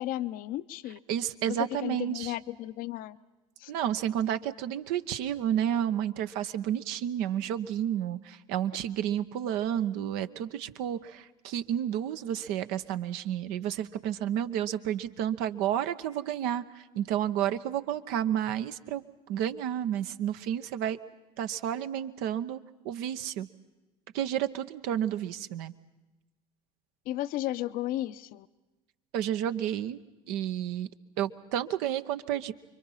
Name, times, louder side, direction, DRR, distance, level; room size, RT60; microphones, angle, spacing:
voice 1, 0.0-1.0 1.5-3.2 3.6-3.7 27.1-28.5, left 14 dB, 55° left, 13 dB, 0.8 m, -34 dB
voice 2, 1.1-2.3 3.7-19.0 19.3-21.0 21.4-22.6 22.8-23.5 24.1-25.7 29.1-30.0 30.3-30.9 31.2-32.5, right 10 dB, 60° right, 10 dB, 1.1 m, -31 dB
29.5 x 23.5 x 5.7 m, 1.1 s
figure-of-eight pair, 65°, 18 cm